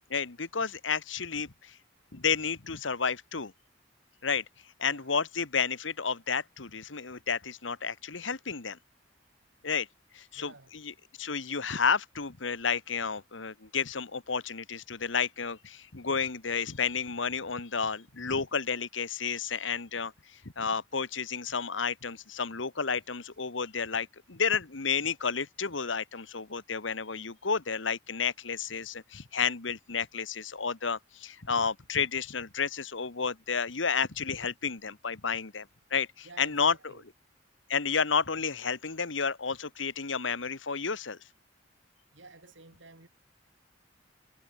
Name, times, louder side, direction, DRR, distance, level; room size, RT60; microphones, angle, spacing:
voice 1, 0.1-1.8 2.1-3.5 4.2-4.4 4.8-8.8 9.6-9.9 10.1-10.9 11.2-20.1 20.6-36.7 37.7-41.2, left 5 dB, 85° left, 1.5 m, -31 dB
voice 2, 10.3-10.7 36.2-37.0 42.1-43.1, right 3 dB, 80° right, 4.2 m, -52 dB
head